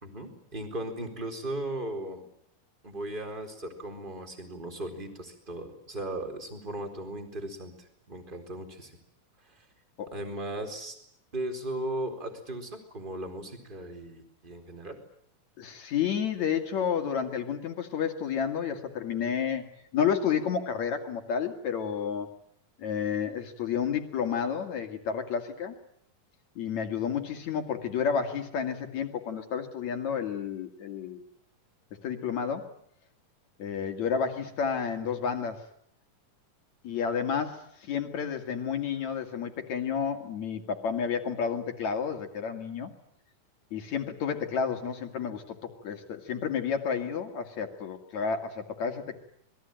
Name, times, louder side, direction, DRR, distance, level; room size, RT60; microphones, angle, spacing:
voice 1, 0.0-2.3 2.8-9.0 9.4-9.7 10.1-11.0 11.3-15.0, right 1 dB, 15° right, 5 dB, 4.2 m, -37 dB
voice 2, 15.6-19.6 19.9-22.3 22.8-25.8 26.6-31.2 32.0-32.7 33.6-35.6 36.8-42.9 43.7-49.2, left 7 dB, 55° left, 5 dB, 3.5 m, -31 dB
28.0 x 21.5 x 9.1 m, 0.68 s
omnidirectional pair, 4.0 m